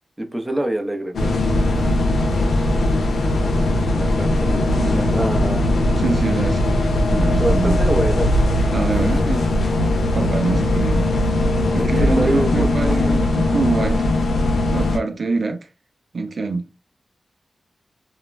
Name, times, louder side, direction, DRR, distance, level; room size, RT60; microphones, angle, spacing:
voice 1, 0.2-1.4 3.9-4.7 5.1-5.7 7.4-8.5 11.8-13.2, right 1 dB, 10° right, 0.6 m, -25 dB
sound 1, 1.1-15.0, left 1 dB, 90° left, 0.6 m, -19 dB
voice 2, 4.7-5.1 6.0-6.6 7.1-7.8 8.7-9.5 10.1-11.1 11.7-14.1 14.7-15.7 16.1-16.7, right 3 dB, 60° right, 0.4 m, -24 dB
2.4 x 2.0 x 3.2 m
cardioid pair, 65°, 0 cm